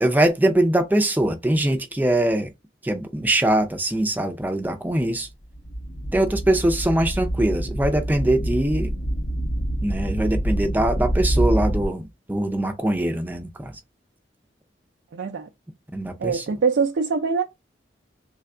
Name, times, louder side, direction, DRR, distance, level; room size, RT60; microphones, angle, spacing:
voice 1, 0.0-2.5 2.8-5.3 6.1-8.9 9.8-13.8 15.9-16.4, right 1 dB, 10° right, 0.4 m, -22 dB
sound 1, 5.2-5.3 5.5-11.9, right 1 dB, 45° left, 0.6 m, -26 dB
voice 2, 15.1-15.5 16.2-17.4, right 5 dB, 80° right, 0.4 m, -23 dB
3.3 x 2.2 x 3.7 m
head